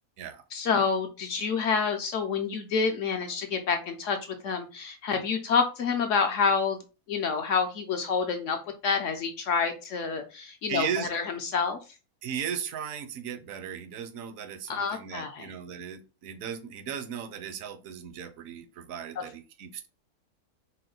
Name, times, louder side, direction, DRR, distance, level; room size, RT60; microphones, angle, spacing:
voice 1, 0.5-4.2 4.4-6.8 7.1-8.6 8.8-11.8 14.7-15.5 19.2-19.3, left 5 dB, 65° left, 0.8 m, -28 dB
voice 2, 10.7-11.1 12.2-19.9, right 8 dB, 70° right, 1.0 m, -36 dB
4.3 x 2.1 x 3.8 m
omnidirectional pair, 1.6 m